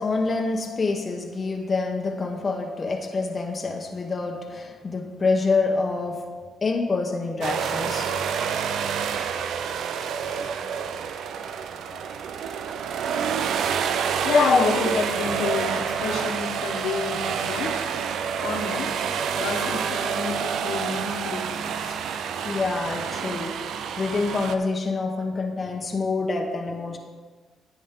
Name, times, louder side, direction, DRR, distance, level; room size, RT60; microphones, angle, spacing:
voice 1, 0.0-6.3 6.6-8.1 11.9-12.0 14.3-14.7 22.4-23.5 24.0-27.0, left 3 dB, 35° left, 2 dB, 1.1 m, -26 dB
sound 1, 7.4-24.6, right 7 dB, 75° right, 0.6 m, -28 dB
voice 2, 14.2-17.8 18.4-18.9 19.4-21.9, left 4 dB, 80° left, 2 dB, 1.3 m, -30 dB
10.5 x 8.6 x 3.8 m, 1.4 s
cardioid pair, 90°, 0 cm